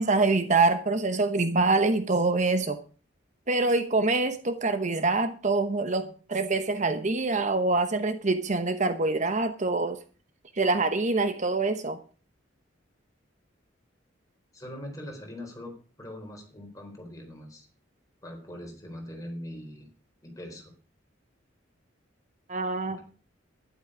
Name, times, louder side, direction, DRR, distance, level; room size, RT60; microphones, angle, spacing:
voice 1, 0.0-2.8 3.5-10.0 10.6-12.0 22.5-23.0, right 3 dB, 40° right, 9 dB, 0.9 m, -25 dB
voice 2, 14.5-15.7 16.0-17.7 18.2-19.9 20.2-20.7 22.9-23.0, left 1 dB, 15° left, 2 dB, 4.2 m, -41 dB
12.0 x 11.5 x 5.0 m, 0.39 s
head